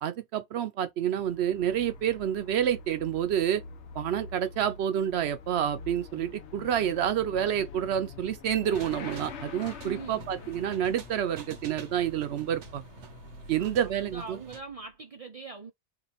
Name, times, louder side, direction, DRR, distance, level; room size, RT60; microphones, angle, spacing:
voice 1, 0.0-3.6 4.0-12.8 13.5-14.4, right 10 dB, 70° right, 0.8 m, -28 dB
Motorcycle / Accelerating revving vroom, 1.1-14.9, left 5 dB, 80° left, 1.0 m, -46 dB
sound 1, 8.7-14.6, right 6 dB, 90° right, 1.0 m, -48 dB
voice 2, 9.8-10.3 13.6-15.7, right 4 dB, 55° right, 0.4 m, -43 dB
3.0 x 2.5 x 4.0 m
omnidirectional pair, 1.2 m